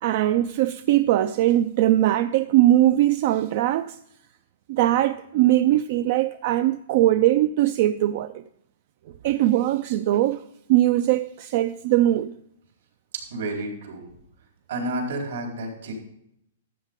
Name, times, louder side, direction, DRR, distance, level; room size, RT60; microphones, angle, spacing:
voice 1, 0.0-4.0 4.7-8.4 9.2-10.4 10.7-12.3, right 14 dB, 45° right, 0.4 m, -21 dB
voice 2, 13.3-14.0 14.7-15.9, right 1 dB, 75° right, 4.1 m, -30 dB
12.5 x 8.2 x 3.7 m
hypercardioid pair, 160°, 0 cm